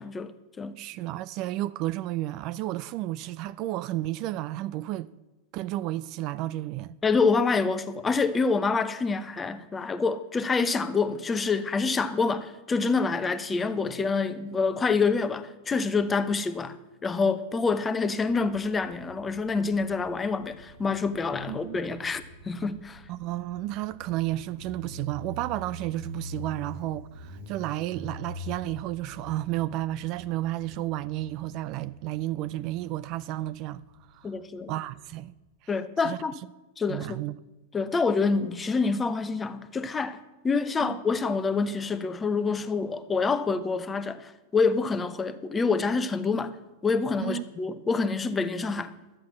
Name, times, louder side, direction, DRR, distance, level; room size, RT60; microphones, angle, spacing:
voice 1, 0.0-0.8 7.0-16.8 17.0-23.0 34.2-34.7 35.7-36.3 36.8-37.2 37.7-46.6 46.8-48.9, left 4 dB, 20° left, 0.8 m, -27 dB
voice 2, 0.8-5.1 5.5-7.0 21.5-21.8 23.1-33.8 34.1-34.3 34.7-35.3 36.0-36.2 36.9-37.4 40.8-41.0 47.2-47.4, right 15 dB, 45° right, 0.3 m, -32 dB
Motorcycle, 18.2-35.4, equal, 65° right, 1.9 m, -46 dB
11.5 x 7.8 x 7.0 m
hypercardioid pair, 100°, 0 cm